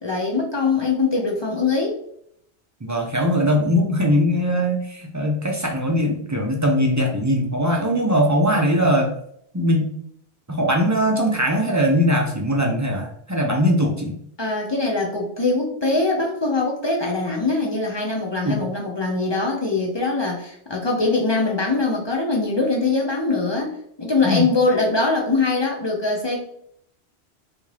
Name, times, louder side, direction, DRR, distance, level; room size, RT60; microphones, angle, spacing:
voice 1, 0.0-2.0 14.4-26.4, left 3 dB, 35° left, -1 dB, 0.4 m, -22 dB
voice 2, 2.8-9.2 9.5-9.9 10.5-14.1 18.4-18.6 24.2-24.5, equal, 30° right, 1 dB, 0.3 m, -20 dB
3.5 x 2.6 x 3.2 m, 0.70 s
omnidirectional pair, 1.1 m